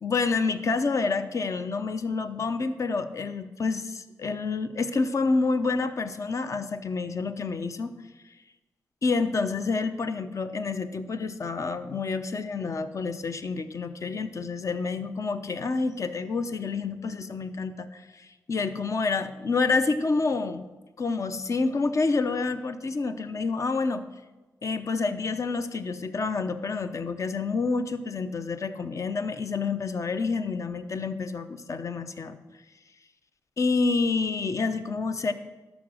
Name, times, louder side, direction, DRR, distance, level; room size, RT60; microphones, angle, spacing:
voice 1, 0.0-7.9 9.0-20.7 21.0-24.0 24.6-32.4 33.6-35.3, left 4 dB, 50° left, 10 dB, 0.7 m, -28 dB
12.0 x 5.2 x 6.3 m, 1.2 s
cardioid pair, 80°, 7 cm